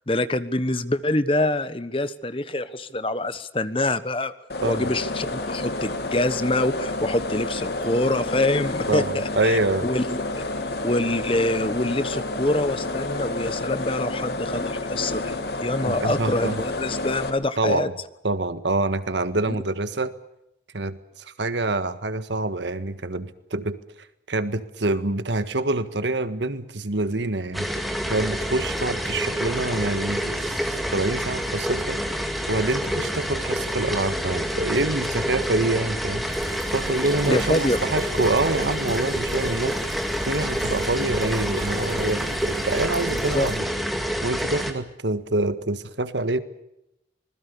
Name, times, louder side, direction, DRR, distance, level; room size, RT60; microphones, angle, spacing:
voice 1, 0.1-4.3 4.6-10.2 10.8-17.9 37.2-37.8 43.1-43.5, left 1 dB, 30° left, 13 dB, 1.2 m, -25 dB
sound 1, 4.5-17.3, left 2 dB, 65° left, 2.7 m, -30 dB
voice 2, 8.9-9.9 15.9-16.6 17.6-17.9 18.2-20.1 20.7-23.8 24.3-32.0 32.5-36.3 36.7-43.7 44.2-46.4, right 2 dB, 85° right, 12 dB, 1.7 m, -26 dB
sound 2, 27.5-44.7, equal, ahead, 2.4 m, -28 dB
sound 3, 36.3-43.6, right 1 dB, 20° right, 6.6 m, -39 dB
26.0 x 20.5 x 6.8 m, 0.84 s
head